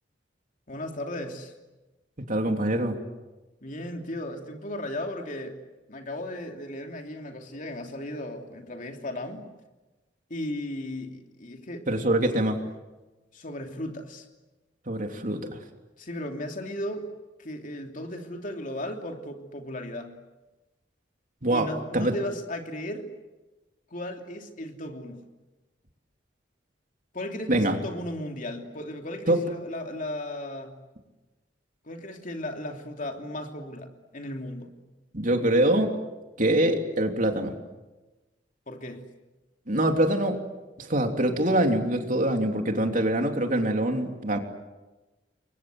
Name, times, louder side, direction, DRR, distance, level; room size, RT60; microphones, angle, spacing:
voice 1, 0.7-1.5 3.6-5.6 5.9-9.5 10.3-11.8 13.3-14.3 16.0-17.1 17.4-20.1 21.5-23.1 23.9-25.2 27.1-30.8 31.8-34.7 38.7-39.0, left 1 dB, 45° left, 4 dB, 3.0 m, -36 dB
voice 2, 2.3-3.0 11.9-12.6 14.9-15.5 21.4-21.7 21.9-22.1 27.5-27.8 29.3-29.4 35.1-35.9 36.4-37.5 39.7-40.4 40.8-44.4, right 1 dB, 50° right, 4 dB, 3.2 m, -24 dB
30.0 x 23.5 x 7.9 m, 1.1 s
head